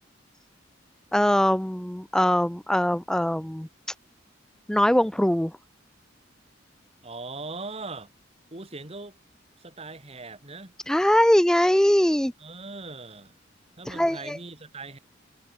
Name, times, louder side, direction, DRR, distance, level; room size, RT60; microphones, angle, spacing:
voice 1, 1.1-3.7 4.7-5.6 10.9-12.3 13.9-14.4, equal, 5° left, 0.4 m, -22 dB
voice 2, 7.0-8.1 8.5-9.2 9.6-10.7 12.4-13.4 13.8-15.0, right 3 dB, 35° right, 2.3 m, -40 dB
head